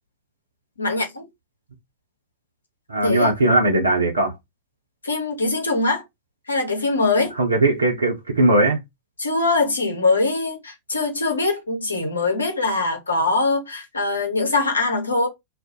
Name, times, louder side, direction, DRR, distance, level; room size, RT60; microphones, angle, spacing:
voice 1, 0.8-1.3 3.0-3.3 5.0-6.0 6.5-7.4 9.2-15.3, left 3 dB, 75° left, 0.7 m, -22 dB
voice 2, 2.9-4.3 7.3-8.8, right 2 dB, 75° right, 0.6 m, -19 dB
2.3 x 2.0 x 2.7 m
figure-of-eight pair, 90°, 0 cm